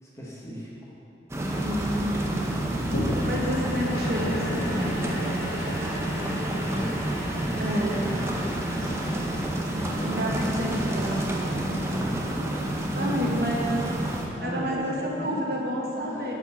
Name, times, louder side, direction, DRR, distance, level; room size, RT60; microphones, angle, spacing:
voice 1, 0.0-0.7 6.3-8.4 10.0-10.2 11.7-12.2 13.0-13.5 14.4-15.4 16.0-16.3, right 1 dB, 15° left, -5 dB, 1.3 m, -36 dB
sound 1, 1.3-14.3, right 1 dB, 15° right, 0.7 m, -29 dB
voice 2, 1.6-2.4 3.2-5.0 5.5-6.2 7.6-8.2 8.8-9.0 9.7-11.6 12.9-13.7 14.4-16.3, equal, 60° right, -3 dB, 1.4 m, -30 dB
sound 2, 2.9-13.4 14.0-14.1, equal, 60° left, 1.8 m, -35 dB
7.9 x 4.9 x 7.2 m, 3.0 s
head